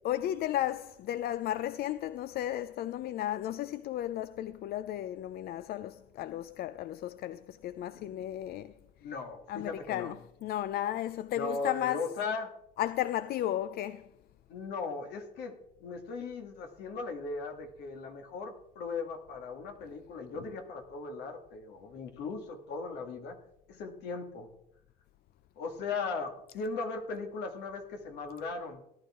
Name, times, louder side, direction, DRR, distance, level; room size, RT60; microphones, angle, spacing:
voice 1, 0.0-8.7 9.5-12.1 12.8-14.1 20.3-20.4, left 12 dB, 65° left, 0.5 m, -34 dB
voice 2, 7.9-8.5 9.0-10.1 11.3-12.5 14.5-15.5 15.8-23.4 23.7-24.5 25.6-28.8, left 4 dB, 85° left, 2.1 m, -38 dB
18.5 x 11.0 x 3.7 m
cardioid pair, 110°, 17 cm